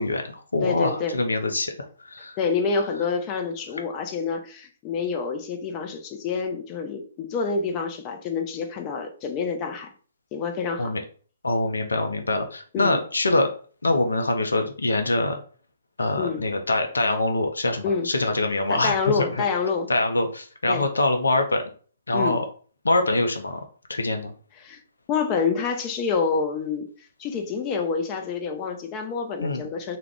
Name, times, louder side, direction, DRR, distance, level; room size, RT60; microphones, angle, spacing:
voice 1, 0.0-1.7 2.0-2.4 10.8-11.0 11.4-13.5 13.8-15.4 16.0-19.0 19.9-21.6 22.1-22.5 22.8-23.6 23.9-24.3 29.4-29.6, left 2 dB, 80° left, 5 dB, 0.5 m, -24 dB
voice 2, 0.6-1.2 2.4-9.9 10.3-10.9 12.7-13.0 16.2-16.4 17.8-18.1 18.7-19.9 20.7-20.9 22.1-22.4 24.6-24.8 25.1-26.9 27.2-30.0, left 5 dB, 30° left, 5 dB, 0.5 m, -27 dB
2.3 x 2.1 x 3.4 m, 0.42 s
figure-of-eight pair, 130°, 0 cm